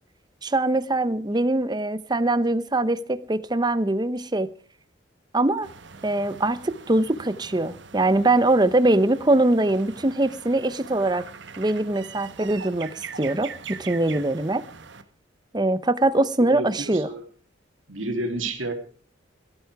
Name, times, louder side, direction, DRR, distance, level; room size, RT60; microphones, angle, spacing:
voice 1, 0.4-4.5 5.3-5.7 6.0-11.2 11.6-14.6 15.5-17.1, right 2 dB, 20° right, 14 dB, 0.7 m, -22 dB
sound 1, 5.6-15.0, right 5 dB, 65° right, 1.1 m, -42 dB
voice 2, 16.5-17.2 17.9-18.7, right 2 dB, 85° right, 4 dB, 2.5 m, -30 dB
17.0 x 13.0 x 4.7 m, 0.41 s
head